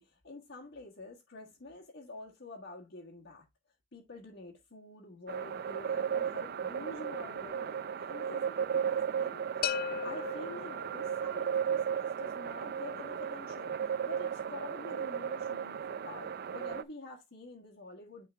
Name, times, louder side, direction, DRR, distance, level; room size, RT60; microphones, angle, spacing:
voice 1, 0.0-3.4 3.9-9.4 10.0-13.7 14.0-18.3, left 2 dB, 65° left, 1.6 m, -48 dB
sound 1, 5.3-16.8, right 8 dB, 55° right, 0.4 m, -35 dB
sound 2, 9.6-11.5, left 8 dB, 50° left, 0.3 m, -37 dB
9.4 x 3.8 x 3.5 m
head